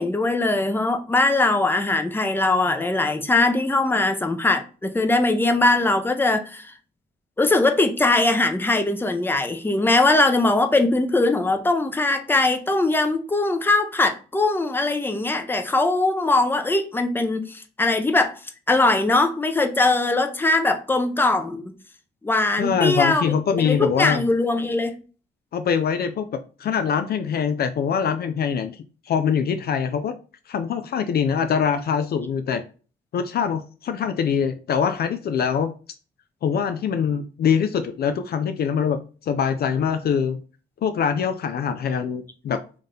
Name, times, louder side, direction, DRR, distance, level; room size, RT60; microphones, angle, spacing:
voice 1, 0.0-6.7 7.4-18.3 18.7-21.7 22.2-23.4 23.6-25.0, left 2 dB, 10° left, 0.6 m, -21 dB
voice 2, 22.6-24.2 25.5-30.1 30.5-32.6 33.1-35.7 36.4-40.4 40.8-42.6, left 7 dB, 50° left, 0.4 m, -23 dB
3.6 x 2.7 x 3.7 m
cardioid pair, 90°, 20 cm